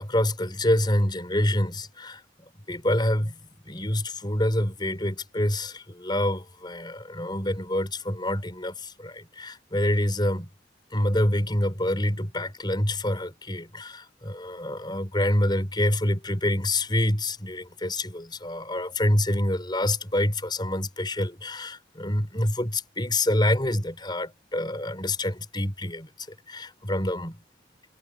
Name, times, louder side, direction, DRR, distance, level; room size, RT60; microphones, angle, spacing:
voice 1, 0.0-2.2 2.7-3.4 3.7-10.5 10.9-27.4, left 1 dB, 25° left, 5.1 m, -26 dB
head